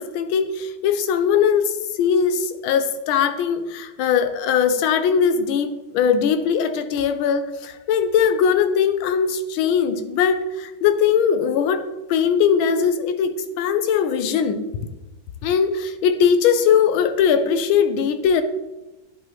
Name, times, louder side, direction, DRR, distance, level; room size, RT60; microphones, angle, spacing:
voice 1, 0.0-14.6 15.4-18.4, left 7 dB, 90° left, 10 dB, 1.5 m, -20 dB
11.0 x 5.5 x 3.0 m, 1.1 s
omnidirectional pair, 2.2 m